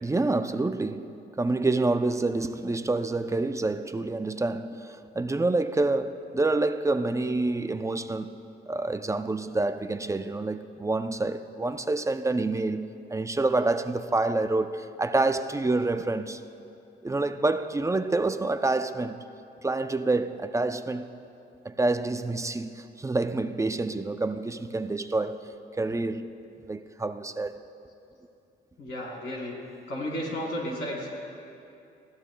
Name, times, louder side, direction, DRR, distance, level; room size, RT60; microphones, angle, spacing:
voice 1, 0.0-16.4 17.0-19.2 19.6-21.1 21.6-25.4 25.8-26.3 26.6-27.6, right 2 dB, 15° right, 0.5 m, -27 dB
voice 2, 28.8-29.5 29.9-31.1, equal, 70° left, 3.9 m, -33 dB
25.0 x 16.0 x 2.3 m
cardioid pair, 90°, 20 cm